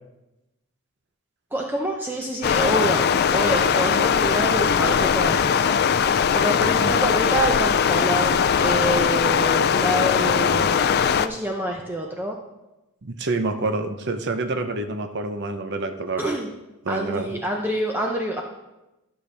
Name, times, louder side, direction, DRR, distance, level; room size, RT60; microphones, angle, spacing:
voice 1, 1.5-3.0 3.3-5.9 6.3-10.8 11.2-12.4 16.2-16.5 16.9-18.4, right 1 dB, 10° right, 1 dB, 0.5 m, -27 dB
Stream, 2.4-11.3, left 7 dB, 45° left, 0.3 m, -20 dB
voice 2, 6.6-6.9 13.0-16.3 16.8-17.3, right 3 dB, 50° right, 7 dB, 0.7 m, -27 dB
12.0 x 6.6 x 3.4 m, 0.97 s
head